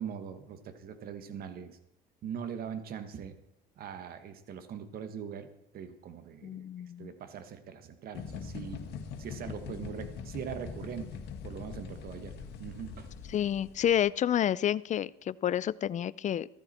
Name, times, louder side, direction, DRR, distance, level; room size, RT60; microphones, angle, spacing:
voice 1, 0.0-1.8 2.2-3.3 3.8-6.6 7.0-8.8 9.2-11.2 11.4-13.1, right 7 dB, 65° right, 9 dB, 1.6 m, -41 dB
voice 2, 6.4-7.1 13.3-16.5, left 10 dB, 45° left, 19 dB, 0.6 m, -29 dB
sound 1, 8.2-14.0, left 5 dB, 85° left, 1.8 m, -42 dB
16.0 x 14.0 x 4.4 m, 0.82 s
cardioid pair, 110°, 17 cm